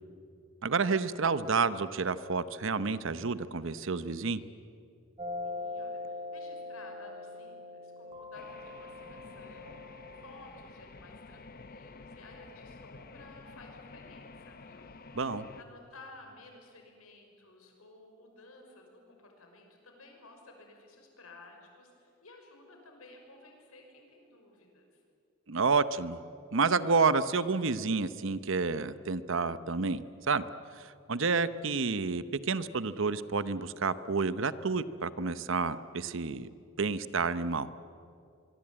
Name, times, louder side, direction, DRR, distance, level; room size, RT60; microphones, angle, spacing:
voice 1, 0.6-4.4 15.1-15.4 25.5-26.2 26.5-30.4 30.8-36.5 36.8-37.7, right 4 dB, 60° right, 14 dB, 0.8 m, -29 dB
sound 1, 5.2-10.4, left 2 dB, 25° right, 3.0 m, -42 dB
voice 2, 5.4-15.2 15.6-25.0, left 2 dB, 90° left, 2 dB, 5.8 m, -54 dB
sound 2, 8.3-15.6, left 3 dB, 45° left, 0.9 m, -50 dB
25.0 x 23.5 x 8.8 m, 2.5 s
head